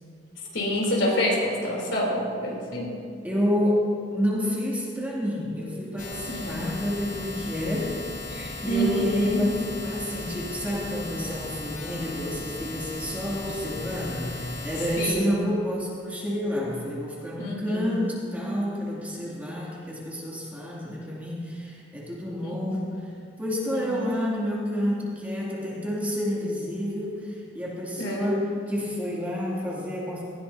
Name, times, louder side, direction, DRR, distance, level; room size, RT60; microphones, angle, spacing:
voice 1, 0.5-2.9 6.2-6.7 8.6-9.4 15.0-15.5 17.4-17.9 22.4-22.9 23.7-24.2 27.9-28.3, equal, 80° left, -2 dB, 3.4 m, -28 dB
voice 2, 3.2-8.0 8.3-23.1 23.4-30.2, equal, 10° right, -5 dB, 2.5 m, -29 dB
sound 1, 6.0-15.1, left 3 dB, 45° left, 1.3 m, -37 dB
18.5 x 15.5 x 2.8 m, 2.3 s
head